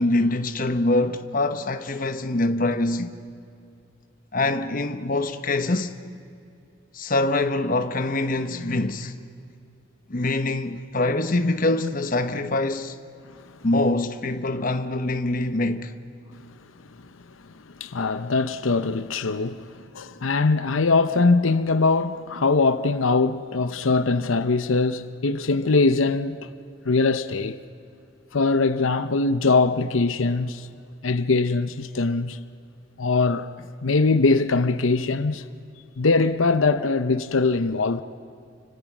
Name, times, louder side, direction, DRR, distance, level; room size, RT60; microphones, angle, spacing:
voice 1, 0.0-3.2 4.3-5.9 6.9-9.1 10.1-12.9 13.6-15.9, left 2 dB, 45° left, 1.0 m, -24 dB
voice 2, 17.6-26.5 26.8-27.6 28.3-30.7 31.0-32.4 33.0-33.5 33.8-35.5 36.0-38.0, left 3 dB, 85° left, 0.8 m, -22 dB
29.5 x 25.5 x 6.1 m
head